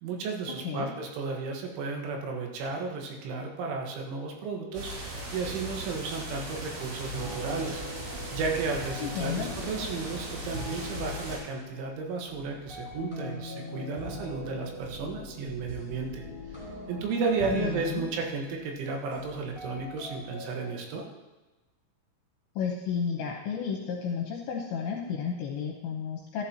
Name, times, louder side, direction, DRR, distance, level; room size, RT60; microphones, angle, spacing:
voice 1, 0.0-7.8 8.1-16.2 16.9-21.1, right 4 dB, 75° right, 1 dB, 3.8 m, -33 dB
sound 1, 4.7-11.4, right 1 dB, 55° right, 4.1 m, -38 dB
sound 2, 7.1-20.7, left 1 dB, 15° right, 2.5 m, -42 dB
voice 2, 9.0-9.5 17.5-18.0 22.6-26.4, left 6 dB, 75° left, -1 dB, 3.0 m, -32 dB
sound 3, 13.0-16.1, left 2 dB, 15° left, 2.4 m, -43 dB
13.5 x 11.0 x 2.9 m, 1.2 s
omnidirectional pair, 5.7 m